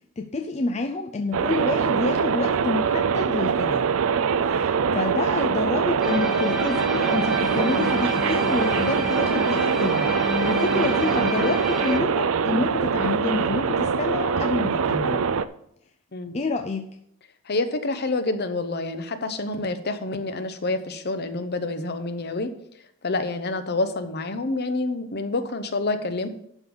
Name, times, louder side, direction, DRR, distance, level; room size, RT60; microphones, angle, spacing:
voice 1, 0.2-3.8 4.4-15.2 16.3-16.9, left 3 dB, 30° left, 4 dB, 0.5 m, -28 dB
sound 1, 1.3-15.4, right 6 dB, 70° right, 0.5 m, -23 dB
sound 2, 6.0-12.0, left 1 dB, 5° right, 1.2 m, -29 dB
voice 2, 17.5-22.5 23.0-26.3, left 2 dB, 50° left, 9 dB, 0.9 m, -27 dB
11.5 x 3.9 x 6.8 m, 0.72 s
head